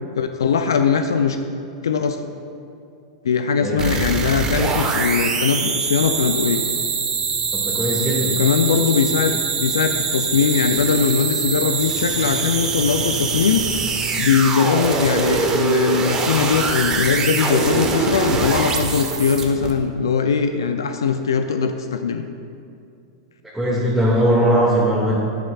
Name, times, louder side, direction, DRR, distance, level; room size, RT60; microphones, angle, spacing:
voice 1, 0.1-1.4 1.8-2.2 3.2-6.6 8.3-9.3 9.6-13.6 14.2-22.3, left 6 dB, 80° left, 7 dB, 0.4 m, -20 dB
voice 2, 3.6-3.9 7.5-8.3 23.5-25.2, equal, ahead, -8 dB, 1.9 m, -19 dB
sound 1, 3.8-19.7, right 4 dB, 25° right, 1.1 m, -23 dB
11.0 x 10.5 x 2.4 m, 2.5 s
hypercardioid pair, 100°, 2 cm